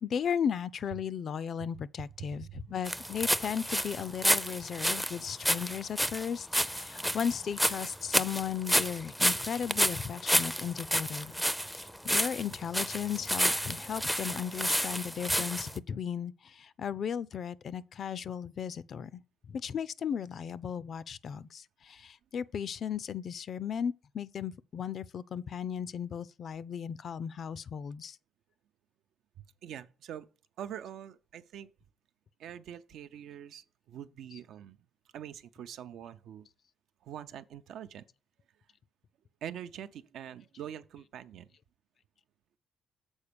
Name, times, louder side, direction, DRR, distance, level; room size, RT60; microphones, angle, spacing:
voice 1, 0.0-11.4 11.7-19.2 19.5-28.2 34.3-34.4, left 8 dB, 55° left, 0.4 m, -36 dB
voice 2, 2.2-2.7 29.4-30.3 30.6-31.7 32.4-34.8 35.1-36.5 37.0-38.0 39.4-41.5, right 10 dB, 75° right, 0.5 m, -44 dB
sound 1, 2.9-15.8, equal, ahead, 0.4 m, -30 dB
7.2 x 4.3 x 6.7 m
cardioid pair, 90°, 0 cm